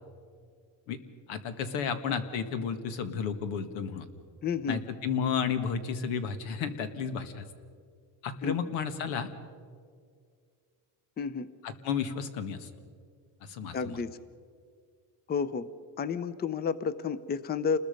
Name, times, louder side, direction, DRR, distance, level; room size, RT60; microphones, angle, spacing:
voice 1, 1.3-4.1 4.7-7.5 8.2-9.3 11.6-12.7 13.5-14.0, left 6 dB, 90° left, 9 dB, 1.9 m, -32 dB
voice 2, 4.4-4.8 8.4-8.6 11.2-11.5 13.7-14.2 15.3-15.7 16.0-17.8, left 6 dB, 20° left, 15 dB, 0.6 m, -31 dB
28.5 x 20.5 x 5.3 m, 2.1 s
cardioid pair, 135°, 44 cm